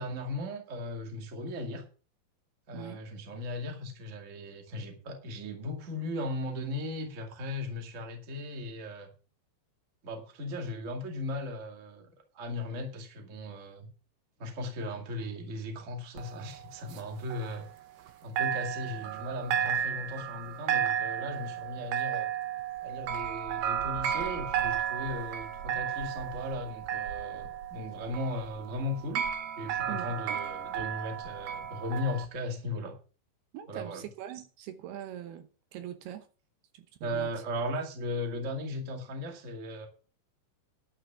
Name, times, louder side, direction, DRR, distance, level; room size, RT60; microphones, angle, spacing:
voice 1, 0.0-1.8 2.7-9.1 10.0-13.9 14.4-17.7 18.2-22.3 22.8-29.3 29.6-33.0 33.7-34.0 37.0-39.9, left 1 dB, 30° right, 1.5 m, -37 dB
voice 2, 2.7-3.0 29.9-30.4 33.5-36.3 36.7-37.3, right 11 dB, 75° right, 2.8 m, -43 dB
sound 1, 16.2-18.1 18.4-32.3, right 9 dB, 90° right, 1.5 m, -33 dB
11.5 x 6.4 x 7.0 m
omnidirectional pair, 4.9 m